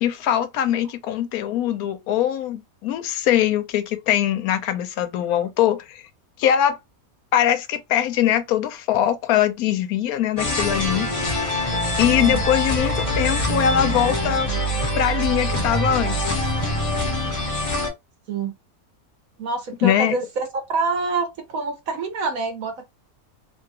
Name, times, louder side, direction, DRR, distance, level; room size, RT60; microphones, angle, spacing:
voice 1, 0.0-6.0 6.4-6.8 7.3-11.1 12.0-14.5 15.0-16.5 19.8-20.2, left 10 dB, 90° left, 1.1 m, -22 dB
sound 1, 10.4-17.9, equal, 35° left, 0.6 m, -24 dB
voice 2, 19.4-22.8, right 4 dB, 75° right, 1.3 m, -26 dB
3.0 x 2.3 x 2.8 m
omnidirectional pair, 1.5 m